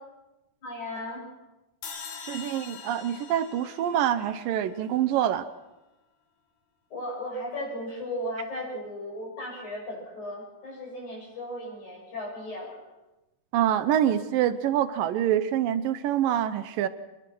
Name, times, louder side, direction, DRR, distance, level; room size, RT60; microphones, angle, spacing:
voice 1, 0.6-1.3 6.9-12.8, left 1 dB, 45° left, -1 dB, 8.4 m, -36 dB
sound 1, 1.8-5.0, left 6 dB, 85° left, 4.8 m, -43 dB
voice 2, 2.3-5.5 13.5-16.9, right 10 dB, 70° right, 12 dB, 2.3 m, -25 dB
27.0 x 21.5 x 6.2 m, 1.0 s
omnidirectional pair, 4.6 m